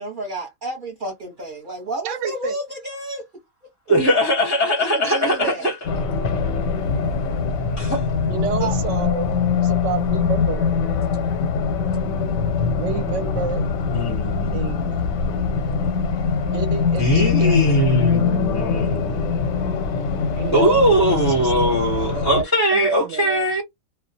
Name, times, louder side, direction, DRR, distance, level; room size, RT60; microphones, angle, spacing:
voice 1, 0.0-3.2 4.8-5.7 8.6-8.7, right 2 dB, 45° right, 0.8 m, -31 dB
voice 2, 2.0-2.6 5.0-5.6 8.3-9.3 9.6-10.8 12.8-13.6 14.5-15.0 16.5-17.8 20.3-21.8 22.1-23.5, right 7 dB, 70° right, 0.9 m, -30 dB
voice 3, 3.9-5.8 7.8-8.0 13.9-14.6 17.0-19.4 20.5-23.6, equal, 20° left, 0.5 m, -20 dB
Race car auto racing, 5.8-22.4, left 5 dB, 90° left, 1.0 m, -22 dB
2.3 x 2.1 x 2.7 m
omnidirectional pair, 1.4 m